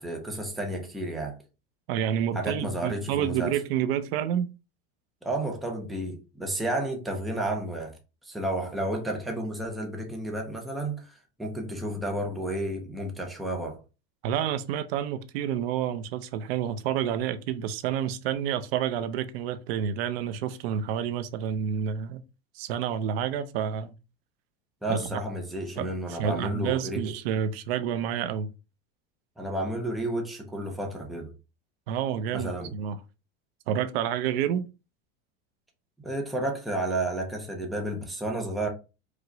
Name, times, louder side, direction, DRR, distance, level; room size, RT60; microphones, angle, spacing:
voice 1, 0.0-1.4 2.3-3.6 5.2-8.0 8.2-13.8 24.8-27.1 29.4-31.3 32.3-32.7 36.0-38.7, right 1 dB, ahead, 0.5 m, -31 dB
voice 2, 1.9-4.5 14.2-22.2 22.5-23.9 24.9-25.2 25.8-28.5 31.9-33.0 33.7-34.7, right 9 dB, 70° right, 0.6 m, -29 dB
4.9 x 2.2 x 3.8 m
supercardioid pair, 165°, 31 cm